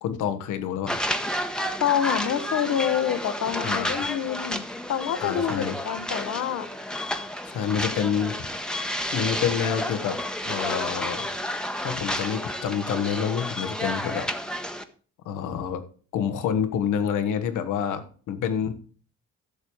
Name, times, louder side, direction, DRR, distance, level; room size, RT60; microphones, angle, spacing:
voice 1, 0.0-1.0 3.6-3.9 5.2-5.7 7.5-8.5 9.1-10.2 10.4-11.3 11.8-14.3 15.2-15.8 16.1-18.8, left 8 dB, 90° left, 10 dB, 1.3 m, -28 dB
sound 1, 0.9-14.8, left 1 dB, 5° left, 1.0 m, -31 dB
voice 2, 1.8-6.7, left 9 dB, 70° left, 11 dB, 1.2 m, -27 dB
12.0 x 7.1 x 4.6 m, 0.41 s
cardioid pair, 90°, 30 cm